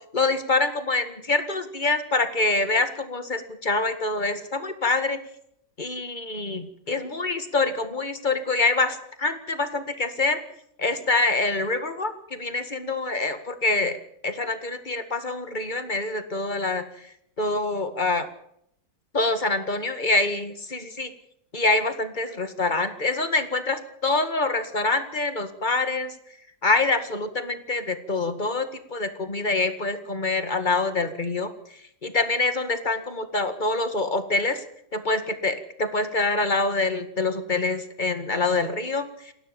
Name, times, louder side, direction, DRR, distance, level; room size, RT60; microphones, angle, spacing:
voice 1, 0.1-5.2 5.8-10.4 10.8-14.0 14.2-16.8 17.4-18.3 19.1-21.1 21.5-26.1 26.6-31.5 32.0-34.6 34.9-39.3, left 3 dB, 30° left, 10 dB, 2.1 m, -25 dB
29.0 x 13.0 x 7.1 m, 0.71 s
omnidirectional pair, 1.7 m